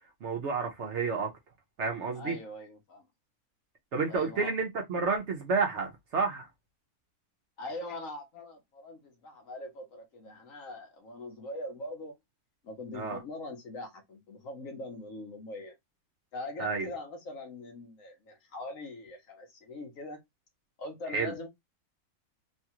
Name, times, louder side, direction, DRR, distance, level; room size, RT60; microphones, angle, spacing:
voice 1, 0.2-1.3 1.8-2.4 3.9-6.5 12.9-13.2 16.6-16.9 21.1-21.3, right 4 dB, 60° right, 0.9 m, -30 dB
voice 2, 2.1-3.1 4.1-4.5 7.6-12.1 12.6-15.7 16.3-20.2 20.8-21.5, left 2 dB, 65° left, 1.3 m, -42 dB
3.2 x 2.3 x 2.7 m
omnidirectional pair, 1.6 m